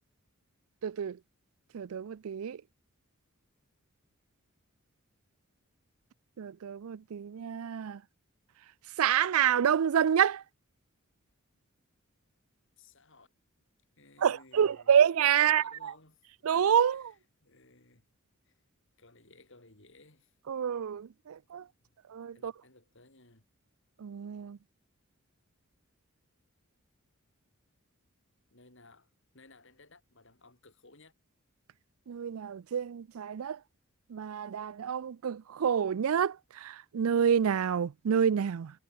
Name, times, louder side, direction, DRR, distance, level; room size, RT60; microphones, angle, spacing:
voice 1, 0.8-1.2 1.7-2.6 6.4-8.0 9.0-10.4 14.2-15.9 16.4-17.1 20.5-21.6 22.1-22.5 24.0-24.6 32.1-33.6 34.1-38.7, right 8 dB, 80° right, 0.4 m, -28 dB
voice 2, 12.8-13.3 14.0-14.9 15.4-16.2 16.8-18.1 18.4-18.6 19.0-20.3 21.8-22.0 22.3-23.4 28.5-31.1, left 3 dB, 60° left, 4.8 m, -59 dB
head